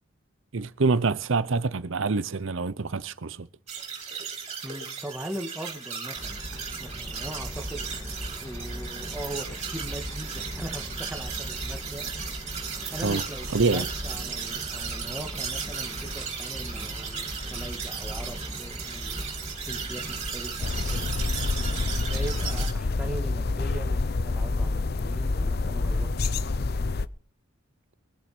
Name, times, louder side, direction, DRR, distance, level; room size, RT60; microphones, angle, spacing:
voice 1, 0.5-3.5 13.0-13.2 13.5-13.9, right 4 dB, 65° right, 0.7 m, -26 dB
sound 1, 3.7-22.7, right 6 dB, 30° right, 4.3 m, -36 dB
voice 2, 4.6-6.4 6.8-7.9 8.4-12.6 12.9-19.3 19.7-21.1 21.9-26.7, right 1 dB, 5° right, 1.9 m, -40 dB
sound 2, 6.1-22.5, equal, 15° left, 2.4 m, -39 dB
sound 3, 20.6-27.1, left 3 dB, 50° left, 0.6 m, -27 dB
22.5 x 7.9 x 6.0 m
head